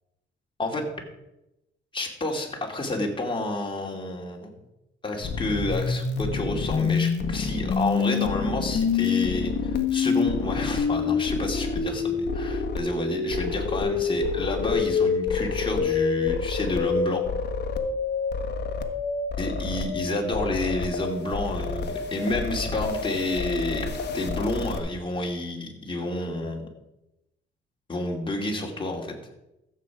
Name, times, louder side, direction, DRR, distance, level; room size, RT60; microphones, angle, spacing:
voice 1, 1.9-4.5 5.0-17.2 19.4-26.7 27.9-29.1, left 2 dB, 25° left, 1 dB, 2.8 m, -29 dB
sound 1, 5.2-24.8, left 5 dB, 60° left, 1.5 m, -27 dB
15.0 x 7.6 x 4.9 m, 0.90 s
cardioid pair, 90°, 20 cm